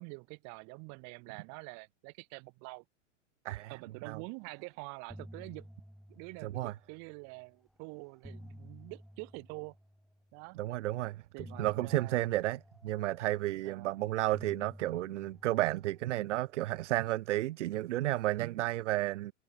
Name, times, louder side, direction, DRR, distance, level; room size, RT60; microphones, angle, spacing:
voice 1, 0.0-2.8 3.7-5.7 6.1-9.8 10.3-10.6 11.3-12.2 13.6-13.9 18.4-18.6, right 35 dB, 45° right, 6.4 m, -46 dB
sound 1, 4.4-4.7 4.9-7.3 7.9-10.4 11.4-13.8 14.3-16.9, equal, ahead, 1.3 m, -53 dB
voice 2, 6.4-6.7 10.6-11.2 11.6-19.3, right 16 dB, 70° right, 0.8 m, -32 dB
hypercardioid pair, 125°, 37 cm